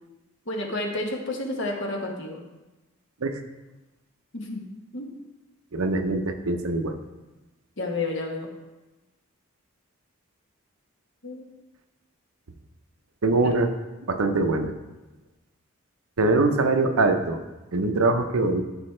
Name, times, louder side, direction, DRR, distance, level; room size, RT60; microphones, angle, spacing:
voice 1, 0.5-2.4 4.3-4.6 4.9-5.1 7.8-8.5 11.2-11.5 13.4-13.5, left 2 dB, 55° left, 1 dB, 1.2 m, -30 dB
voice 2, 5.7-6.9 13.2-13.7 14.1-14.7 16.2-17.4 17.7-18.6, right 3 dB, 80° right, 7 dB, 0.8 m, -23 dB
13.0 x 4.7 x 3.3 m, 1.1 s
head